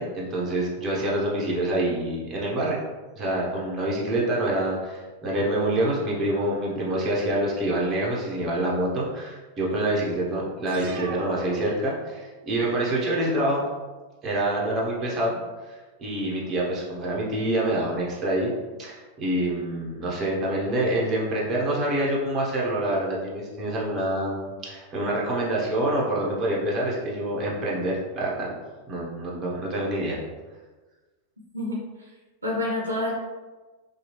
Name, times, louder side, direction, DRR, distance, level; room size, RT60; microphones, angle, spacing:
voice 1, 0.0-2.8 3.2-13.6 14.2-15.3 15.7-18.5 18.8-28.5 28.9-30.2, right 1 dB, 30° right, -4 dB, 0.7 m, -26 dB
sound 1, 10.7-12.5, right 5 dB, 50° right, 0.3 m, -39 dB
voice 2, 31.5-32.1 32.4-33.1, left 2 dB, 75° right, -3 dB, 0.7 m, -28 dB
2.8 x 2.3 x 2.9 m, 1.3 s
figure-of-eight pair, 90°, 0 cm